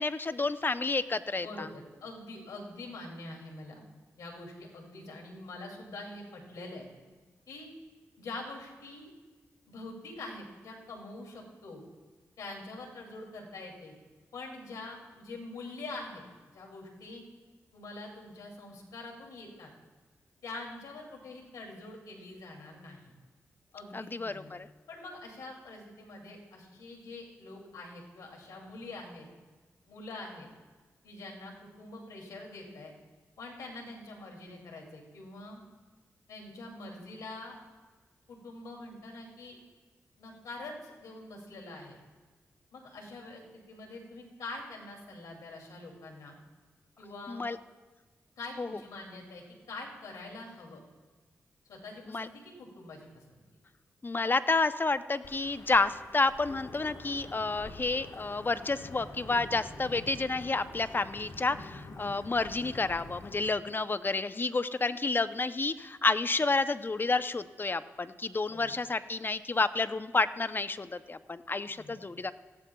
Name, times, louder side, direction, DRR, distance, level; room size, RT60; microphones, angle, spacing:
voice 1, 0.0-1.7 23.9-24.7 47.3-47.6 48.6-48.8 52.1-52.3 54.0-72.3, left 3 dB, 35° left, 12 dB, 0.7 m, -30 dB
voice 2, 1.4-3.8 4.2-6.9 7.5-7.7 8.2-9.1 9.7-11.8 12.4-13.9 14.3-16.2 16.5-17.2 17.7-19.7 20.4-23.1 23.7-24.5 24.9-29.3 29.9-30.5 31.0-32.9 33.4-35.6 36.3-37.5 38.3-39.6 40.2-42.0 42.7-46.4 47.0-47.4 48.4-50.8 51.6-53.4 68.5-68.7 71.7-72.0, left 2 dB, 85° left, 0 dB, 2.6 m, -45 dB
Wind / Thunder / Rain, 55.2-63.5, left 2 dB, 70° left, 1.4 m, -47 dB
18.0 x 15.0 x 2.3 m, 1.3 s
supercardioid pair, 40°, 6 cm